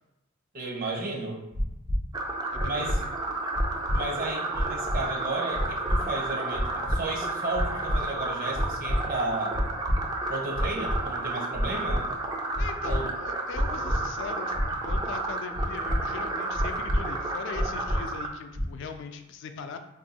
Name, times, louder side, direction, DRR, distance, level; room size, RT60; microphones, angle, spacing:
voice 1, 0.5-1.4 2.6-3.0 3.9-9.6 10.3-12.1 12.8-13.1, right 2 dB, 40° right, 0 dB, 0.7 m, -33 dB
sound 1, 1.5-2.0 2.5-3.0 3.5-4.0 4.5-5.0 5.5-6.0 6.5-7.0 7.5-8.0 8.5-9.0 9.5-10.0 10.5-11.0 11.5-12.0 12.5-13.0 13.5-14.0 14.5-15.0 15.5-16.0 16.5-17.0 17.5-18.0 18.5-18.9, equal, 80° right, 1.1 m, -27 dB
sound 2, 2.1-18.3, right 2 dB, 20° right, 0.3 m, -32 dB
voice 2, 2.5-3.1 12.6-19.8, left 5 dB, 60° left, 7 dB, 0.3 m, -40 dB
2.7 x 2.6 x 4.0 m, 0.95 s
head